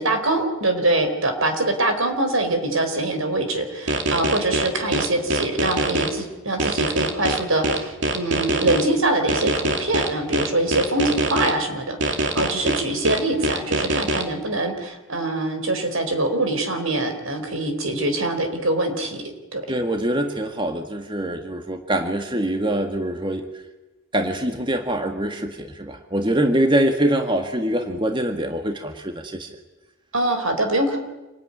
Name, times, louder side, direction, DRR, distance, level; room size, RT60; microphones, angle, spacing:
voice 1, 0.0-19.2 19.5-19.6 30.1-31.0, right 2 dB, 80° right, 6 dB, 4.4 m, -24 dB
sound 1, 3.9-6.1 6.6-8.8 9.3-11.5 12.0-14.2, right 1 dB, 60° right, 2.8 m, -23 dB
voice 2, 19.7-23.5 24.1-29.5, right 1 dB, 25° right, 5 dB, 1.7 m, -24 dB
27.5 x 20.0 x 9.9 m, 1.1 s
head